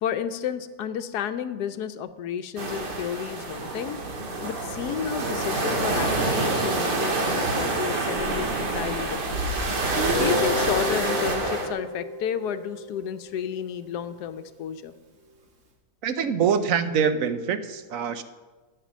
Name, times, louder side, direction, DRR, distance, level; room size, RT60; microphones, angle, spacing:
voice 1, 0.0-4.0 4.4-9.5 10.1-14.9, left 8 dB, 75° left, 11 dB, 1.2 m, -32 dB
sound 1, 2.6-11.7, right 2 dB, 85° right, 2.4 m, -27 dB
Guitar, 10.0-13.8, left 1 dB, 50° right, 1.7 m, -31 dB
voice 2, 16.0-18.2, right 7 dB, 65° right, 11 dB, 1.0 m, -24 dB
14.0 x 7.9 x 6.1 m, 1.3 s
omnidirectional pair, 1.8 m